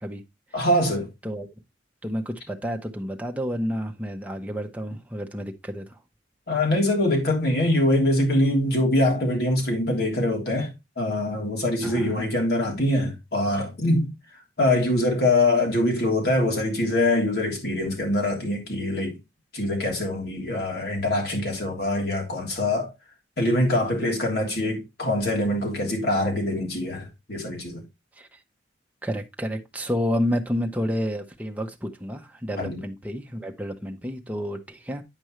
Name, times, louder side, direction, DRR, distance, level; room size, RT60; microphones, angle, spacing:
voice 1, 0.5-1.1 6.5-14.1 14.6-19.2 19.5-22.9 23.4-27.8 32.6-32.8, left 1 dB, 60° left, 3.2 m, -24 dB
voice 2, 2.0-5.9 11.8-12.3 28.2-28.3 29.0-35.0, equal, 10° right, 0.9 m, -30 dB
9.0 x 5.3 x 3.2 m
head